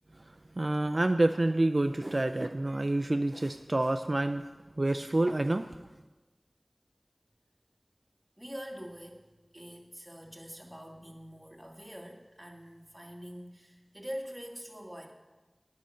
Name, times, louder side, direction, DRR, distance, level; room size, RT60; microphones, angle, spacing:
voice 1, 0.6-4.4 4.8-5.7, right 2 dB, 55° right, 7 dB, 0.5 m, -28 dB
voice 2, 8.4-9.3 9.5-15.1, equal, 10° right, 0 dB, 2.2 m, -44 dB
10.5 x 9.8 x 6.4 m, 1.2 s
wide cardioid pair, 50°, 0 cm